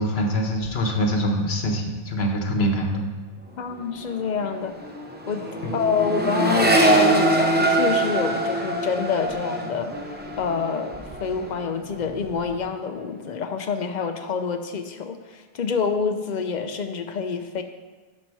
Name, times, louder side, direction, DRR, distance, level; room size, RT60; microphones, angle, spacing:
voice 1, 0.0-3.1 5.6-5.8, equal, 80° left, 2 dB, 1.3 m, -24 dB
voice 2, 3.6-4.7 5.3-5.5 5.7-10.0 10.4-17.6, left 6 dB, 50° left, 7 dB, 0.7 m, -27 dB
Accelerating revving vroom, 3.6-3.8 4.1-11.6 11.9-12.5, right 1 dB, 10° right, 0.6 m, -24 dB
11.0 x 4.3 x 4.7 m, 1.3 s
omnidirectional pair, 1.0 m